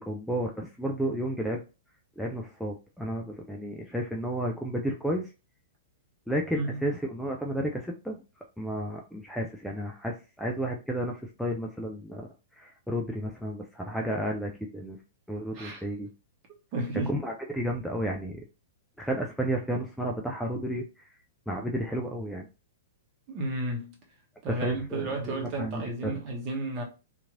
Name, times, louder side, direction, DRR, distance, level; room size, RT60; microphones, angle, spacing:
voice 1, 0.0-1.6 2.2-5.3 6.3-8.2 8.6-12.3 12.5-15.0 15.3-16.1 17.1-18.4 19.0-21.1 21.5-22.5 24.5-26.2, equal, ahead, 0.3 m, -32 dB
voice 2, 16.7-17.1 23.3-23.9 24.4-26.8, right 2 dB, 35° right, 1.0 m, -32 dB
2.9 x 2.5 x 2.5 m
figure-of-eight pair, 110°, 0 cm